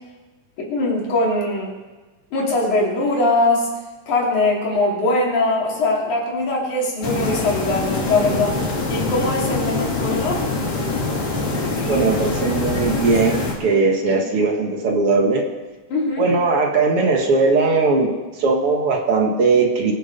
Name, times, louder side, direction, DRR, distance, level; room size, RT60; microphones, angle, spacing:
voice 1, 0.7-1.7 2.3-3.7 4.1-8.6 8.9-10.5 14.1-14.3 15.9-16.3, left 2 dB, 90° left, -3 dB, 4.6 m, -21 dB
sound 1, 7.0-13.5, left 3 dB, 35° left, 3.2 m, -24 dB
voice 2, 11.8-15.5 16.2-19.9, right 3 dB, 55° right, 1 dB, 2.2 m, -19 dB
22.5 x 7.8 x 5.3 m, 1.2 s
omnidirectional pair, 3.3 m